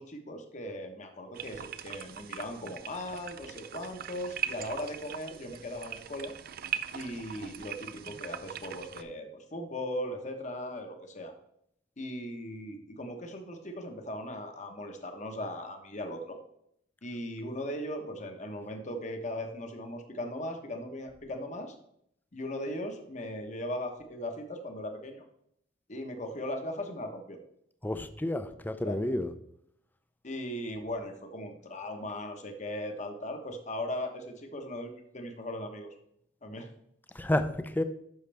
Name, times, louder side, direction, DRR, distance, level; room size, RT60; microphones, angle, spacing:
voice 1, 0.0-6.3 6.9-11.3 12.0-16.4 17.0-21.7 22.3-25.2 25.9-27.4 28.7-29.1 30.2-35.9 36.4-36.7, left 1 dB, 40° left, 5 dB, 1.1 m, -38 dB
sound 1, 1.3-9.0, right 9 dB, 55° right, 0.4 m, -40 dB
voice 2, 27.8-29.3 37.2-37.8, left 1 dB, 10° left, 10 dB, 0.5 m, -30 dB
10.5 x 6.4 x 3.4 m, 0.73 s
head